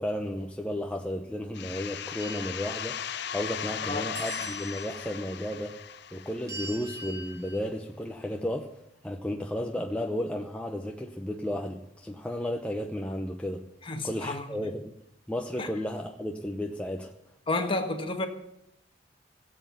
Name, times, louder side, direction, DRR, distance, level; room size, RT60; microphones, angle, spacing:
voice 1, 0.0-3.0 3.3-5.8 6.1-8.7 9.0-13.6 14.0-14.9 15.3-17.1, left 1 dB, 5° left, 2 dB, 0.8 m, -33 dB
sound 1, 1.5-7.1, left 8 dB, 60° left, 0.7 m, -37 dB
sound 2, 2.2-3.7 4.1-5.0 6.5-7.6, right 1 dB, 20° right, 1.7 m, -43 dB
voice 2, 13.8-14.7 15.6-15.7 17.5-18.3, left 2 dB, 30° left, 5 dB, 1.7 m, -31 dB
17.0 x 8.1 x 9.1 m, 0.79 s
head